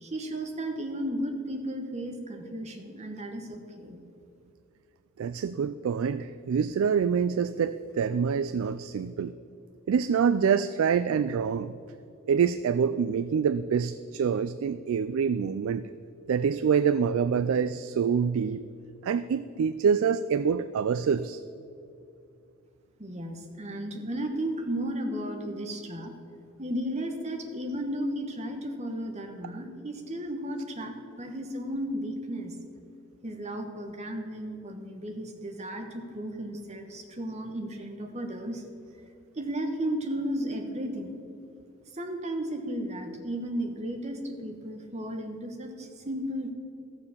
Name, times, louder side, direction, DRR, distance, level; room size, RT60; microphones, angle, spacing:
voice 1, 0.0-4.0 23.0-26.1 26.6-32.5 33.2-38.6 39.4-41.2 41.9-46.5, right 1 dB, 30° right, 4 dB, 1.1 m, -34 dB
voice 2, 5.2-9.3 9.9-11.7 12.3-15.9 16.3-18.6 19.0-21.4, right 6 dB, 65° right, 14 dB, 0.3 m, -26 dB
13.5 x 7.1 x 7.1 m, 2.6 s
head